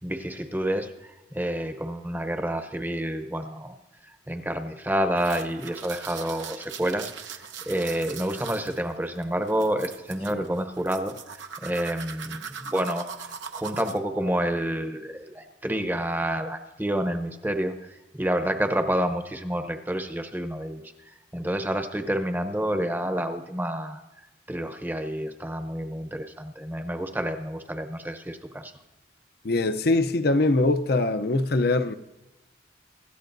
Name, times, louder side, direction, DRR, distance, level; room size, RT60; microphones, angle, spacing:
voice 1, 0.0-3.7 4.3-13.3 13.5-17.7 18.1-20.8 21.3-24.0 24.5-28.7, right 1 dB, 10° right, 0.8 m, -29 dB
sound 1, 5.2-14.0, right 6 dB, 85° right, 0.9 m, -40 dB
voice 2, 29.4-32.0, left 2 dB, 55° left, 0.6 m, -23 dB
25.0 x 13.0 x 2.6 m
head